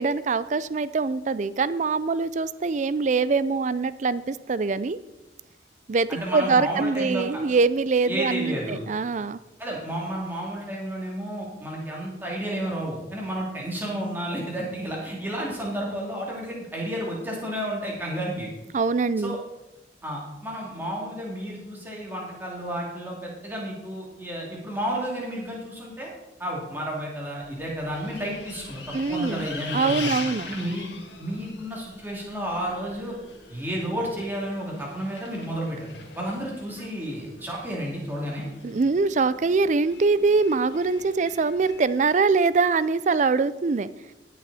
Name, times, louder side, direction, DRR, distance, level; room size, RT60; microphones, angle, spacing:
voice 1, 0.0-5.0 5.9-9.4 18.7-19.4 28.9-29.5 29.7-30.5 38.6-43.9, right 4 dB, 45° right, 16 dB, 0.4 m, -23 dB
voice 2, 6.1-7.4 8.1-8.8 9.6-18.5 19.2-19.4 20.0-26.1 26.4-30.1 30.5-30.9 31.2-33.1 33.5-35.8 36.1-38.5, equal, 10° right, -4 dB, 2.8 m, -31 dB
Bus, 27.4-41.8, left 5 dB, 90° left, 1.7 m, -42 dB
18.5 x 6.3 x 4.2 m, 1.0 s
head